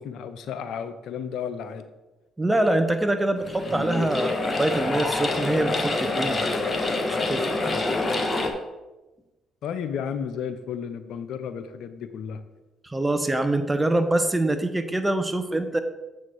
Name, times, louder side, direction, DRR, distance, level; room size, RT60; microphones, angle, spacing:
voice 1, 0.0-1.9 9.6-12.4, left 7 dB, 70° left, 11 dB, 0.6 m, -33 dB
voice 2, 2.4-7.8 12.8-15.8, right 1 dB, 15° right, 8 dB, 0.9 m, -25 dB
sound 1, 3.4-8.5, left 2 dB, 30° left, 1.3 m, -26 dB
7.5 x 4.3 x 6.2 m, 1.1 s
supercardioid pair, 55°, 0 cm